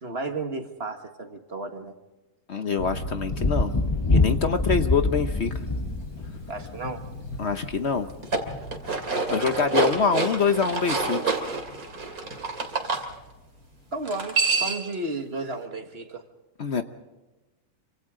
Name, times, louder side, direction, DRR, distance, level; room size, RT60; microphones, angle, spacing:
voice 1, 0.0-1.9 6.5-7.0 13.9-16.3, right 2 dB, 45° right, 6 dB, 1.9 m, -33 dB
voice 2, 2.5-3.7 4.1-5.5 7.4-8.1 9.3-11.4 16.6-16.8, left 5 dB, 50° left, 8 dB, 1.1 m, -25 dB
sound 1, 2.8-14.3, left 1 dB, 80° left, 2.4 m, -39 dB
Thunder, 3.3-7.2 8.5-8.6, left 2 dB, 25° left, 0.6 m, -25 dB
sound 2, 8.1-13.0 14.0-14.9, right 4 dB, 75° right, 3.0 m, -27 dB
26.5 x 26.0 x 3.8 m, 1.1 s
omnidirectional pair, 1.6 m